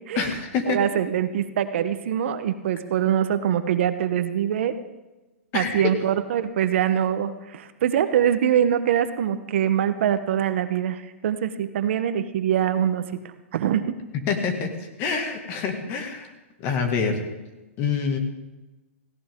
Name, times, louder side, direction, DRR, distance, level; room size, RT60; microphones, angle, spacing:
voice 1, 0.2-0.8 5.5-5.9 14.3-16.3 16.6-17.2 17.8-18.2, left 5 dB, 35° left, 5 dB, 2.1 m, -26 dB
voice 2, 0.7-4.7 5.5-13.1 13.5-14.0, right 9 dB, 60° right, 10 dB, 1.0 m, -23 dB
17.0 x 16.5 x 3.7 m, 1.1 s
hypercardioid pair, 145°, 7 cm